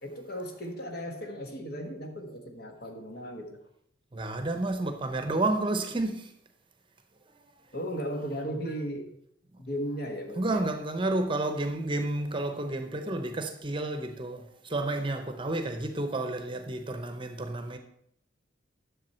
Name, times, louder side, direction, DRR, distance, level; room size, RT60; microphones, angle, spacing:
voice 1, 0.0-3.6 7.7-9.1 9.6-10.7, equal, 55° left, 1.5 m, -36 dB
voice 2, 4.1-6.3 10.4-17.8, right 2 dB, 25° right, 0.8 m, -31 dB
10.5 x 7.0 x 4.4 m
head